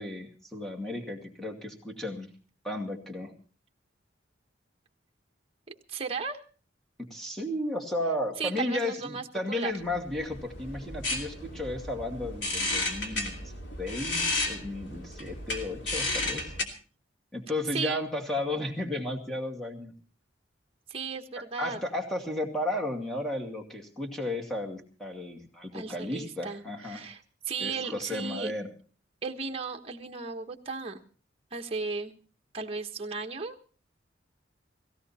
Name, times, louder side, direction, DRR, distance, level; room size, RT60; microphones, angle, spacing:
voice 1, 0.0-2.3 2.6-3.4 7.0-13.4 13.8-16.5 17.3-19.9 21.6-27.1 27.6-28.7, left 1 dB, ahead, 0 dB, 2.3 m, -34 dB
voice 2, 5.7-6.4 8.4-9.7 17.7-18.0 20.9-21.8 25.7-28.5 29.2-31.0 31.5-32.1 32.5-33.6, right 4 dB, 30° right, 3 dB, 1.3 m, -35 dB
sound 1, 9.8-16.6, left 2 dB, 80° left, 2.9 m, -33 dB
17.5 x 16.0 x 4.3 m, 0.38 s
head